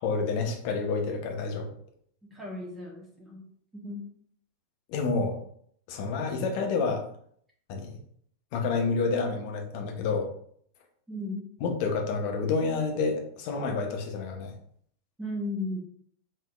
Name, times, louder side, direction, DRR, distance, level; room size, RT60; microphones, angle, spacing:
voice 1, 0.0-1.7 4.9-5.4 5.9-7.0 7.7-8.0 8.5-10.3 11.6-14.5, left 4 dB, 45° left, 2 dB, 0.8 m, -29 dB
voice 2, 2.2-3.5 3.7-4.0 11.1-11.4 15.2-15.8, left 1 dB, 10° right, -2 dB, 0.9 m, -35 dB
5.1 x 2.8 x 2.3 m, 0.64 s
figure-of-eight pair, 90°, 0 cm